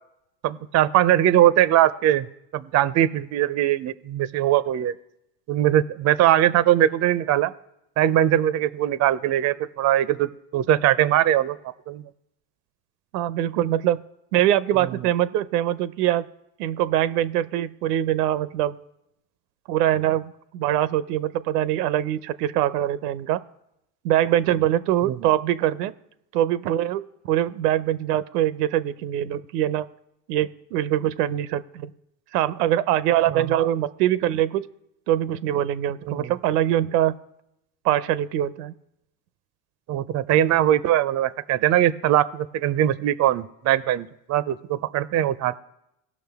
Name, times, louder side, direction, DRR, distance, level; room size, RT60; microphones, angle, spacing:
voice 1, 0.4-2.3 2.5-4.9 5.5-7.5 8.0-11.6 11.9-12.0 25.0-25.2 33.3-33.6 36.1-36.3 39.9-45.6, right 12 dB, 35° right, 16 dB, 0.5 m, -21 dB
voice 2, 13.1-14.0 14.3-16.3 16.6-18.8 19.7-23.4 24.0-25.9 26.3-29.9 30.3-31.9 32.3-34.7 35.1-37.2 37.8-38.7, right 12 dB, 85° right, 15 dB, 0.7 m, -23 dB
18.5 x 6.1 x 3.5 m, 0.83 s
supercardioid pair, 100°, 47 cm